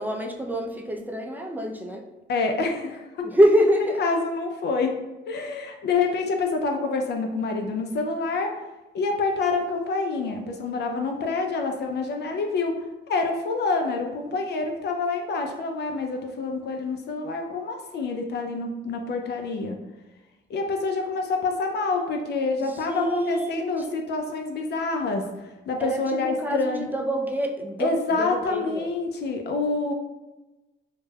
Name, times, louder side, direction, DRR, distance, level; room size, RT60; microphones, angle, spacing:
voice 1, 0.0-2.0 3.2-4.0 22.6-23.7 25.8-27.9 28.2-28.9, equal, 10° right, 3 dB, 0.3 m, -25 dB
voice 2, 2.3-3.3 4.0-4.9 5.3-8.5 8.9-19.8 20.5-26.9 27.8-29.9, left 3 dB, 60° left, 3 dB, 0.4 m, -27 dB
2.1 x 2.1 x 3.2 m, 1.1 s
cardioid pair, 90°, 20 cm